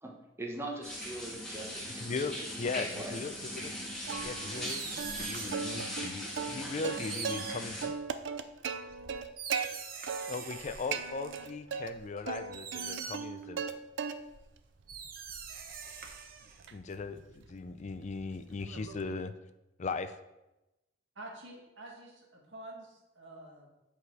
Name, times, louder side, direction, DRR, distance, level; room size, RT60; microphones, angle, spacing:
voice 1, 0.0-2.0 2.8-3.4, right 1 dB, 15° right, 1 dB, 1.1 m, -41 dB
sound 1, 0.8-7.9, equal, 5° left, 1.7 m, -40 dB
voice 2, 2.0-3.7 4.2-4.8 5.2-8.0 10.3-13.6 16.7-19.3 19.8-20.1, left 4 dB, 40° left, 11 dB, 0.4 m, -38 dB
Plucked string instrument, 4.1-4.7 5.0-5.1 5.5-7.5 7.8-9.7 10.1-10.6 10.9-11.9 12.3-13.7 14.0-14.5 14.9-19.1, right 6 dB, 70° right, 0.5 m, -38 dB
sound 2, 4.2-5.7 6.5-6.6 7.0-8.3 8.9-11.4 11.8-13.5 14.5-14.6 14.9-17.0, right 6 dB, 50° right, 0.9 m, -43 dB
voice 3, 21.2-23.7, right 1 dB, 85° right, -1 dB, 1.9 m, -48 dB
8.4 x 4.9 x 4.7 m, 0.97 s
head